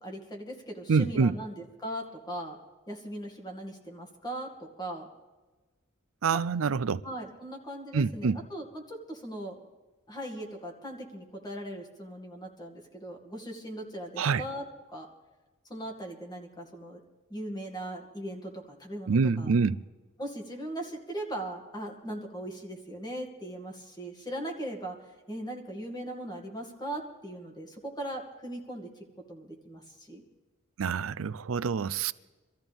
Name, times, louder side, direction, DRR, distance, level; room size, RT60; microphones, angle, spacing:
voice 1, 0.0-2.6 2.9-5.1 7.0-9.6 10.1-15.1 15.7-17.0 17.3-19.5 20.2-28.9 29.3-30.2, right 1 dB, 20° left, 2.3 m, -39 dB
voice 2, 0.9-1.3 6.2-7.0 7.9-8.4 14.2-14.4 19.1-19.8 30.8-32.1, right 5 dB, 70° right, 0.5 m, -26 dB
25.0 x 14.0 x 3.5 m
head